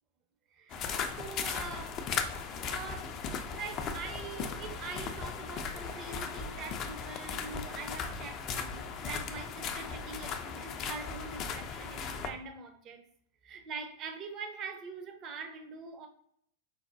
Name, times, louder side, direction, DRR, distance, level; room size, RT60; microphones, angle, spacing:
voice 1, 0.5-2.0 2.7-3.2 3.5-13.0 13.4-16.1, right 4 dB, 35° right, 5 dB, 0.5 m, -43 dB
sound 1, 0.7-12.3, left 6 dB, 35° left, 0.3 m, -37 dB
sound 2, 0.7-2.4 3.3-4.9 5.5-7.7, right 2 dB, 85° right, 1.4 m, -57 dB
4.6 x 2.1 x 2.6 m, 0.69 s
figure-of-eight pair, 90°, 0 cm